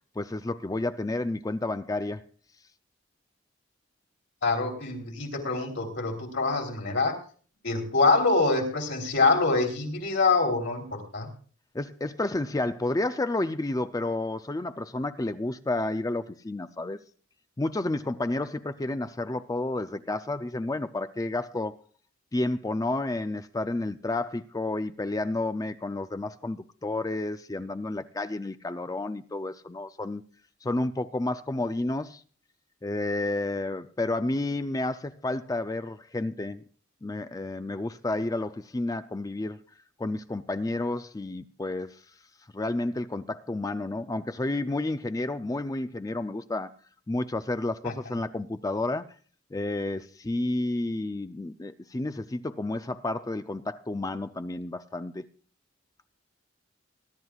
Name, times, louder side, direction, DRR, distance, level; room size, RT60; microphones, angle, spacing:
voice 1, 0.2-2.2 11.7-17.0 17.6-21.7 22.3-30.2 30.6-32.2 32.8-36.6 37.0-39.6 40.0-42.0 42.5-46.7 47.1-49.1 49.5-55.2, left 2 dB, 20° left, 0.4 m, -31 dB
voice 2, 4.4-7.2 7.6-11.3 47.8-47.9, left 3 dB, 65° left, 3.2 m, -25 dB
21.5 x 11.5 x 2.4 m
head